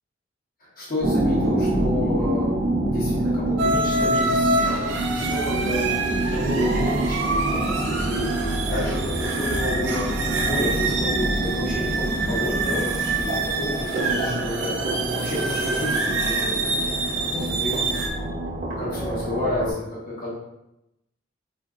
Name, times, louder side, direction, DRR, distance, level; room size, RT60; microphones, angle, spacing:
voice 1, 0.6-2.5 2.9-5.8 6.3-8.3 8.7-10.1 10.4-14.8 15.1-18.0 18.8-20.3, left 1 dB, 50° left, -7 dB, 0.9 m, -31 dB
sound 1, 1.0-19.7, right 1 dB, 50° right, 0.7 m, -26 dB
sound 2, 3.6-18.1, right 2 dB, 80° right, 0.5 m, -27 dB
4.0 x 2.5 x 2.4 m, 0.88 s
head